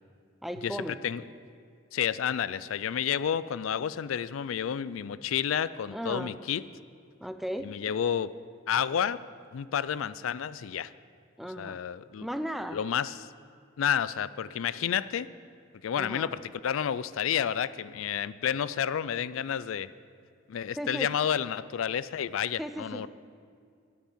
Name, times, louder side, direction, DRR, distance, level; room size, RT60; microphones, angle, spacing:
voice 1, 0.4-1.0 5.9-6.3 7.2-7.7 11.4-11.8 12.2-12.8 15.9-16.3 20.8-21.1 22.6-23.1, equal, ahead, 9 dB, 0.5 m, -36 dB
voice 2, 1.9-6.6 7.6-8.3 8.7-9.2 9.5-10.9 11.6-12.3 12.7-13.3 13.8-15.3 15.8-19.9 20.5-23.1, left 8 dB, 90° left, 17 dB, 0.4 m, -30 dB
10.0 x 9.1 x 8.6 m, 2.3 s
head